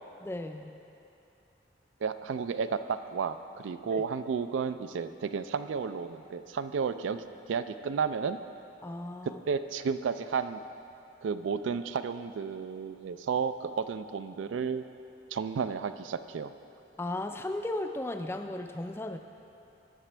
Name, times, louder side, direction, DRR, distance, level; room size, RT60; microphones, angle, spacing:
voice 1, 0.2-0.7 3.9-4.0 8.8-9.4 17.0-19.2, left 1 dB, 15° left, 6 dB, 0.3 m, -35 dB
voice 2, 2.0-7.2 7.5-8.4 9.5-10.6 11.2-14.8 15.3-16.5, right 6 dB, 85° right, 11 dB, 0.3 m, -32 dB
17.5 x 6.0 x 3.3 m, 2.8 s
head